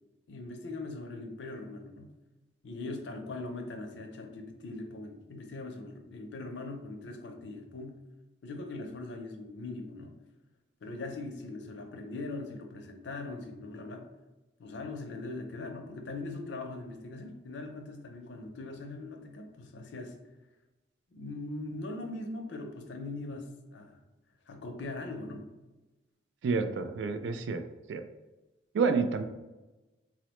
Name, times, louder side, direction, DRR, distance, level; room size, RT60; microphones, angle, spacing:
voice 1, 0.3-2.1 2.6-8.0 8.4-10.2 10.8-14.1 14.6-20.2 21.1-24.0 24.5-25.5, left 2 dB, 75° left, 5 dB, 0.5 m, -41 dB
voice 2, 26.4-27.6 27.9-28.0 28.7-29.2, right 4 dB, 75° right, 9 dB, 0.3 m, -29 dB
3.8 x 2.0 x 2.9 m, 1.1 s
head